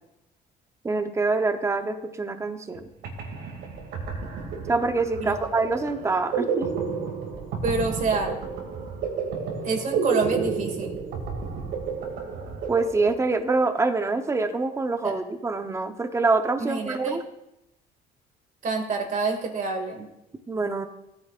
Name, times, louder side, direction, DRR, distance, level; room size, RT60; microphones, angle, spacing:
voice 1, 0.8-2.9 4.7-6.7 12.7-17.2 20.5-20.9, right 3 dB, 15° right, 7 dB, 0.8 m, -25 dB
sound 1, 2.7-2.8 3.0-13.6, right 5 dB, 80° right, 2.3 m, -31 dB
voice 2, 7.6-8.4 9.6-11.0 15.0-15.2 16.6-17.2 18.6-20.1, right 4 dB, 50° right, 4 dB, 2.1 m, -27 dB
16.5 x 9.5 x 2.5 m, 0.88 s
cardioid pair, 110°, 17 cm